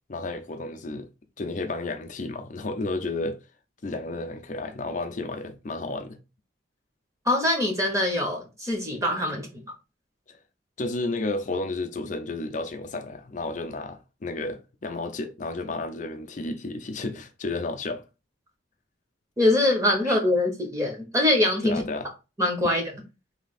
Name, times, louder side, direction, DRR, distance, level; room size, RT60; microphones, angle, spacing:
voice 1, 0.1-1.1 1.4-3.4 3.8-6.2 10.3-10.4 10.8-18.0 20.1-20.2 21.6-22.1, left 2 dB, 40° left, 0.5 m, -32 dB
voice 2, 7.3-9.6 19.4-21.8 22.4-22.9, left 1 dB, 15° right, 1.0 m, -23 dB
3.2 x 2.8 x 4.1 m
head